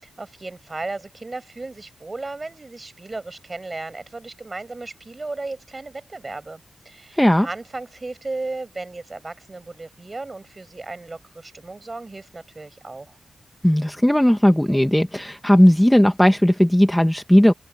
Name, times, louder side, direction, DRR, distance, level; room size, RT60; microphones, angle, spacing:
voice 1, 0.2-13.2, right 3 dB, 30° right, 6.9 m, -35 dB
voice 2, 7.2-7.5 13.6-17.5, equal, 5° left, 1.1 m, -16 dB
open air
cardioid pair, 90°, 0 cm